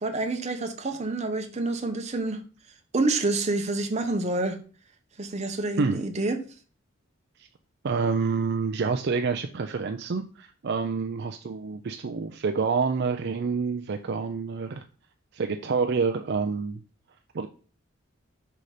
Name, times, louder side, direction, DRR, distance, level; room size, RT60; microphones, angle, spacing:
voice 1, 0.0-2.4 2.9-4.6 5.2-6.4, right 2 dB, 35° right, 0.9 m, -28 dB
voice 2, 7.8-14.8 15.3-16.8 17.3-17.5, right 5 dB, 55° right, 0.5 m, -27 dB
5.7 x 4.0 x 4.9 m
head